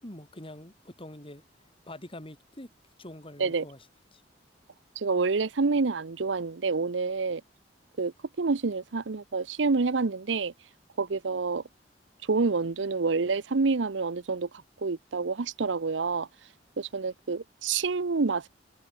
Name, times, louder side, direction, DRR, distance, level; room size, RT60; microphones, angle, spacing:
voice 1, 0.0-2.7 3.0-3.9 4.1-4.2, left 1 dB, 30° left, 5.2 m, -45 dB
voice 2, 5.0-7.4 8.0-10.5 11.0-11.6 12.3-14.5 14.8-16.3 16.8-18.5, right 4 dB, 90° right, 0.7 m, -28 dB
head